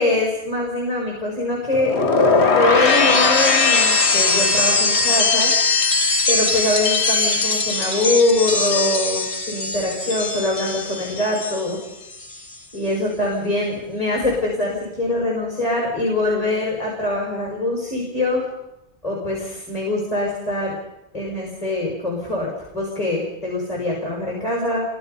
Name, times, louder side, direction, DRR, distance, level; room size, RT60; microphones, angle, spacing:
voice 1, 0.0-1.9 2.5-5.5 6.3-11.8 12.7-18.5 19.0-20.8 21.1-24.8, left 2 dB, 35° left, -1 dB, 6.0 m, -23 dB
sound 1, 1.7-11.8 12.1-12.6, left 4 dB, 75° left, 2.0 m, -20 dB
28.5 x 24.5 x 5.6 m, 0.95 s
omnidirectional pair, 1.1 m